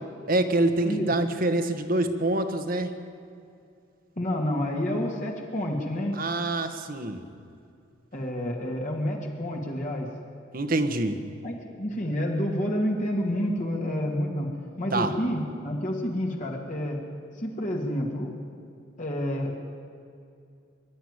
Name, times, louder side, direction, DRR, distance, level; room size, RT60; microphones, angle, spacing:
voice 1, 0.3-2.9 6.1-7.2 10.5-11.2 14.9-15.1, right 2 dB, 45° right, 8 dB, 1.4 m, -26 dB
voice 2, 4.2-6.1 8.1-10.1 11.4-14.5 14.8-17.0 17.4-18.3 19.0-19.6, equal, 40° left, -1 dB, 2.3 m, -29 dB
23.5 x 11.5 x 9.8 m, 2.5 s
head